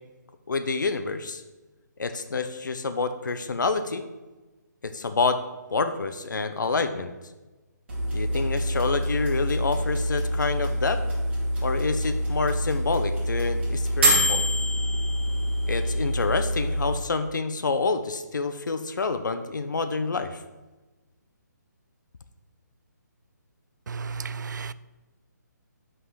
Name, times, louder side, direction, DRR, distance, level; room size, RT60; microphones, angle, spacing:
voice 1, 0.5-1.4 2.0-4.0 4.8-5.4 5.7-7.1 8.1-11.0 11.6-14.5 15.7-20.4, left 4 dB, 80° left, 9 dB, 0.8 m, -27 dB
sound 1, 7.9-16.9, equal, 35° right, 2.7 m, -26 dB
voice 2, 23.9-24.7, right 5 dB, 75° right, 16 dB, 0.4 m, -33 dB
5.7 x 5.5 x 6.3 m, 1.2 s
hypercardioid pair, 175°, 10 cm